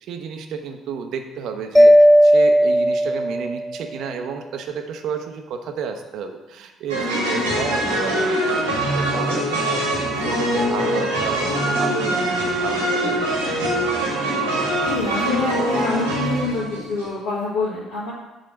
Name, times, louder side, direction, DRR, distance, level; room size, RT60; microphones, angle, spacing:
voice 1, 0.0-8.4 8.6-13.4, right 6 dB, 55° right, 5 dB, 0.7 m, -32 dB
Mallet percussion, 1.7-3.8, equal, 5° left, 0.4 m, -14 dB
sound 1, 6.9-17.1, right 1 dB, 80° right, 1.3 m, -23 dB
voice 2, 14.9-18.1, left 3 dB, 70° left, -10 dB, 1.5 m, -26 dB
6.4 x 4.0 x 5.9 m, 1.1 s
figure-of-eight pair, 50°, 0 cm